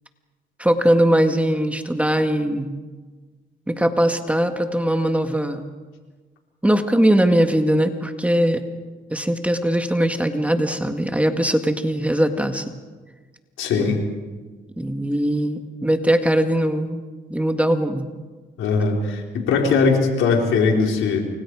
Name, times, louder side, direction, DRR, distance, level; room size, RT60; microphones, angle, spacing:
voice 1, 0.6-2.7 3.7-5.6 6.6-8.6 9.1-12.8 13.8-13.9 14.8-17.0 17.3-18.1, right 1 dB, 5° right, 6 dB, 1.9 m, -20 dB
voice 2, 13.6-14.0 18.6-21.2, left 4 dB, 80° left, 1 dB, 4.5 m, -20 dB
29.0 x 24.5 x 4.9 m, 1.4 s
cardioid pair, 90°, 20 cm